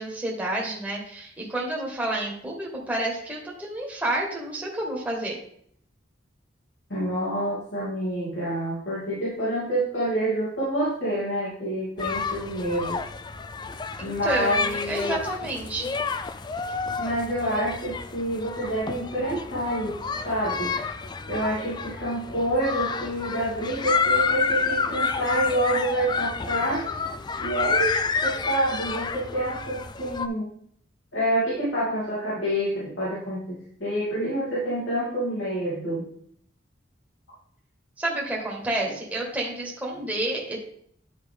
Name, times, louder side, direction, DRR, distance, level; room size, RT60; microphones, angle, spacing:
voice 1, 0.0-5.4 14.0-15.9 38.0-40.6, right 1 dB, 10° right, -3 dB, 1.5 m, -30 dB
voice 2, 6.9-13.0 14.0-15.2 17.0-20.0 20.2-20.7 21.3-26.8 27.4-30.5 31.1-36.1 39.9-40.0, right 1 dB, 80° left, -9 dB, 3.0 m, -27 dB
sound 1, 12.0-30.3, left 5 dB, 25° left, 0.3 m, -29 dB
10.0 x 4.8 x 3.5 m, 0.64 s
head